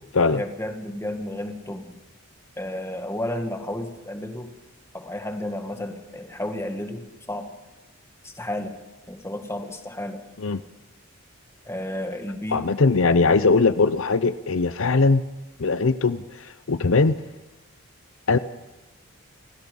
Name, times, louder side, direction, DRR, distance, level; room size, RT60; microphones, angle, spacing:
voice 1, 0.3-1.9 2.6-4.5 4.9-7.5 8.2-8.7 9.1-10.2 11.7-12.7, left 1 dB, 10° left, 5 dB, 1.9 m, -32 dB
voice 2, 12.5-15.2 15.6-16.2 16.7-17.1 18.3-18.4, left 4 dB, 65° left, 13 dB, 0.7 m, -20 dB
29.5 x 16.5 x 5.5 m, 1.1 s
head